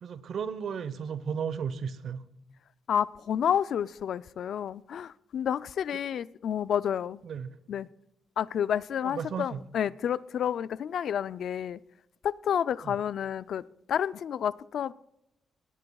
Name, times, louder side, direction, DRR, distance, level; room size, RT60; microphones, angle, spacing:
voice 1, 0.0-2.2 7.2-7.5 9.0-9.6 12.8-13.0, right 7 dB, 65° right, 0.9 m, -34 dB
voice 2, 2.9-7.2 7.7-7.9 8.4-11.8 12.2-14.9, left 9 dB, 70° left, 0.3 m, -30 dB
18.5 x 18.0 x 2.3 m
cardioid pair, 95°, 0 cm